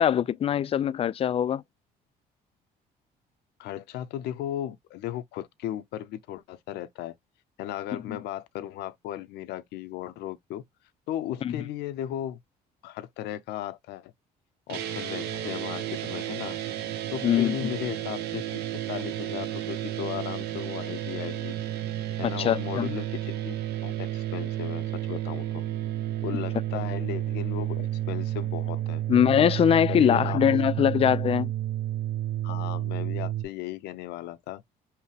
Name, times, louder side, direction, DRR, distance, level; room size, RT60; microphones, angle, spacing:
voice 1, 0.0-1.6 8.1-8.2 11.4-11.5 17.2-17.7 22.2-22.9 29.1-31.5, left 9 dB, 35° left, 0.4 m, -22 dB
voice 2, 3.6-7.1 7.6-10.6 11.1-12.4 12.8-14.1 14.7-16.6 17.1-18.6 18.9-21.6 22.2-23.6 23.8-25.6 26.2-29.0 29.9-30.4 32.4-34.6, left 12 dB, 80° left, 0.6 m, -36 dB
sound 1, 14.7-33.4, right 13 dB, 80° right, 0.8 m, -31 dB
5.6 x 2.1 x 3.2 m
cardioid pair, 110°, 17 cm